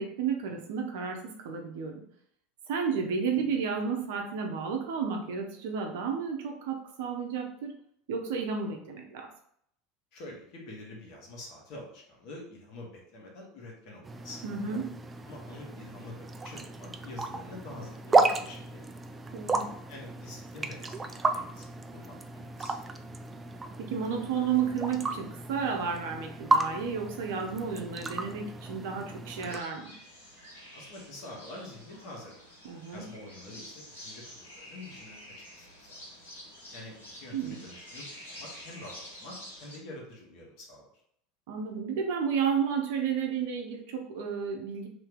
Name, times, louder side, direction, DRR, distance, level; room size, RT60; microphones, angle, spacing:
voice 1, 0.0-2.0 2.7-7.7 8.1-9.3 14.4-14.9 19.3-19.7 23.8-29.9 32.6-33.0 37.3-37.6 41.5-44.9, right 6 dB, 65° right, 2 dB, 0.7 m, -32 dB
voice 2, 10.1-14.4 15.3-18.9 19.9-22.8 30.7-32.4 32.9-36.0 36.7-40.9, left 2 dB, 55° left, -1 dB, 1.2 m, -46 dB
sound 1, 14.0-29.6, right 3 dB, 20° right, 0.3 m, -33 dB
sound 2, 29.4-39.8, equal, 85° left, 1.4 m, -48 dB
2.8 x 2.8 x 3.6 m, 0.69 s
figure-of-eight pair, 75°, 0 cm